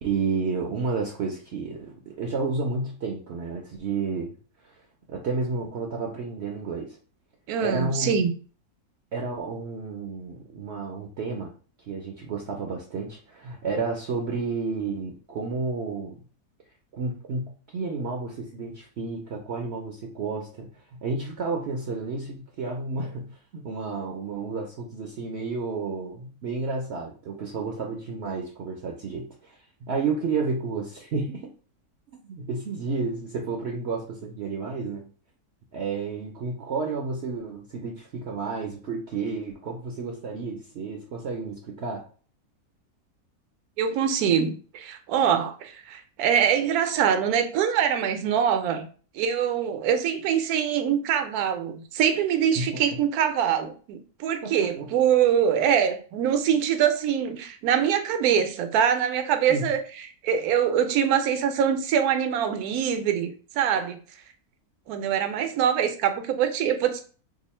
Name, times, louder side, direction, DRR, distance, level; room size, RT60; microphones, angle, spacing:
voice 1, 0.0-4.3 4.6-4.8 5.1-7.0 7.6-8.2 9.1-11.5 11.9-16.2 16.9-31.4 32.1-35.1 35.7-42.0 52.6-52.7 54.4-54.9 59.5-59.7, right 4 dB, 60° right, 0.7 m, -31 dB
voice 2, 7.5-8.3 43.8-48.9 49.1-64.0 64.9-67.0, right 8 dB, 80° right, 1.1 m, -24 dB
2.8 x 2.4 x 4.2 m
omnidirectional pair, 1.6 m